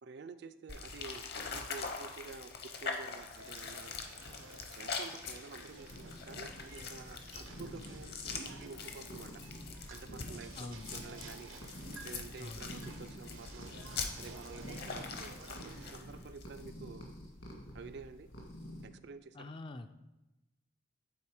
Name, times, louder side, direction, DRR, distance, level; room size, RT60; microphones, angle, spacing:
voice 1, 0.0-1.3 1.5-3.9 4.7-9.4 9.9-11.5 12.0-13.7 14.2-17.1 17.7-18.3 18.8-19.5, right 4 dB, 55° right, 11 dB, 0.4 m, -50 dB
sound 1, 0.7-16.7, left 4 dB, 50° left, 0.8 m, -44 dB
sound 2, 3.4-15.9, right 3 dB, 80° right, 0.9 m, -53 dB
sound 3, 5.6-18.9, equal, 70° left, 1.8 m, -49 dB
voice 2, 10.5-10.9 12.4-12.7 19.3-19.9, left 2 dB, 25° left, 9 dB, 0.3 m, -45 dB
8.5 x 4.1 x 4.8 m, 1.0 s
head